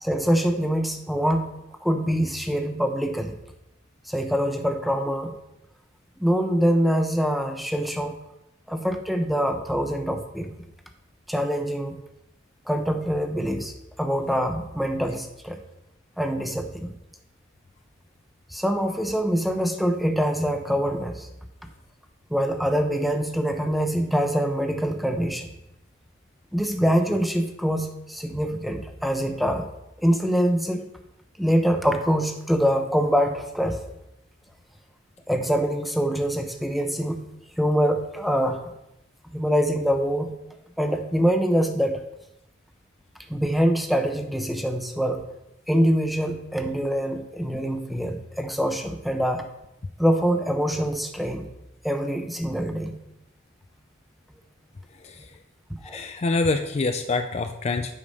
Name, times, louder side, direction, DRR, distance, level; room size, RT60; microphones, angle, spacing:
voice 1, 0.0-1.5 1.8-3.3 4.1-5.3 6.2-8.2 8.7-10.5 11.3-12.0 12.7-15.6 16.2-16.9 18.5-21.3 22.3-25.5 26.5-29.7 30.0-30.8 31.4-33.8 35.3-37.2 37.6-38.7 39.3-40.3 40.8-42.0 43.3-45.3 45.7-49.4 50.0-51.5 51.8-53.0 55.8-56.0, equal, ahead, 5 dB, 0.7 m, -24 dB
voice 2, 55.8-57.9, left 3 dB, 35° left, 7 dB, 0.4 m, -26 dB
8.5 x 4.9 x 5.3 m, 0.86 s
head